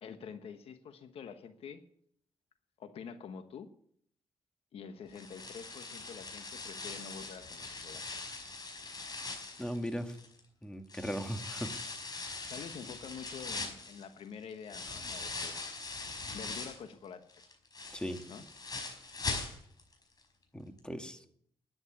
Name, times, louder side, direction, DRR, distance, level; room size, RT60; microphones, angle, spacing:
voice 1, 0.0-1.8 2.8-3.7 4.7-8.0 12.5-15.6 16.3-17.4 18.3-18.4, left 6 dB, 75° left, 9 dB, 1.3 m, -47 dB
sound 1, 5.1-10.4 10.9-16.9 17.3-19.9 20.2-20.3 20.8-20.9, left 3 dB, 40° left, 5.1 m, -41 dB
voice 2, 9.6-10.2 10.6-11.7 17.9-18.2 20.5-21.2, equal, 10° left, 6 dB, 2.0 m, -38 dB
11.5 x 9.4 x 9.9 m, 0.68 s
cardioid pair, 60°, 10 cm